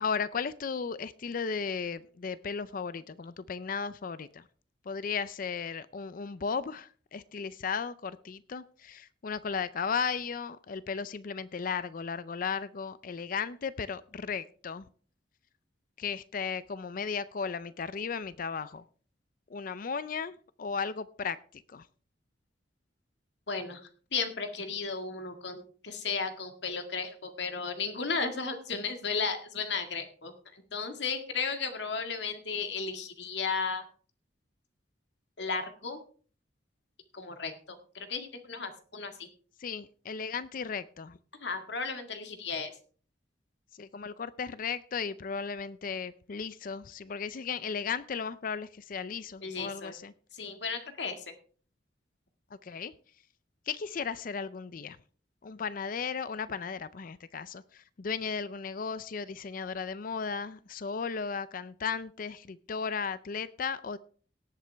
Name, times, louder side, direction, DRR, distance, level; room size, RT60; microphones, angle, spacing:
voice 1, 0.0-4.4 4.9-14.9 16.0-18.8 19.5-21.9 39.6-41.2 43.8-50.1 52.6-52.9 53.7-55.0 55.4-64.0, left 5 dB, 45° left, 16 dB, 0.4 m, -35 dB
voice 2, 23.5-23.8 24.1-33.8 35.4-36.0 37.1-37.5 37.9-39.3 41.4-42.7 49.4-49.9 50.3-51.2, left 5 dB, 65° left, 6 dB, 1.9 m, -34 dB
18.5 x 8.1 x 3.4 m, 0.43 s
head